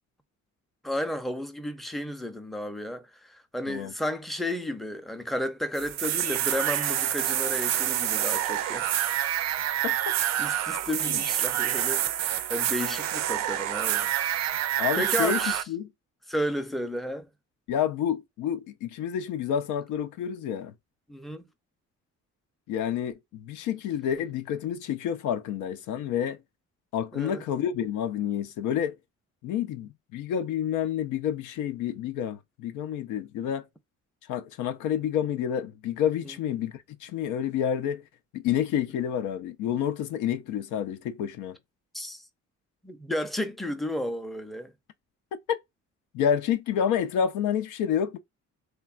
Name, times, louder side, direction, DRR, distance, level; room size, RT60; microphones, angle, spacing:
voice 1, 0.8-8.9 10.4-14.1 14.9-15.6 16.3-17.3 21.1-21.4 27.1-27.4 36.2-36.3 41.9-42.3 42.8-44.7, left 1 dB, ahead, 0.4 m, -33 dB
sound 1, 5.8-15.6, right 11 dB, 65° right, 0.4 m, -27 dB
voice 2, 9.8-10.2 11.1-11.2 14.8-15.4 15.7-15.9 17.7-20.7 22.7-26.4 26.9-29.0 29.4-33.6 34.3-38.0 38.3-41.6 45.5-45.6 46.1-48.2, left 9 dB, 90° left, 0.5 m, -29 dB
3.2 x 2.3 x 2.3 m
cardioid pair, 90°, 30 cm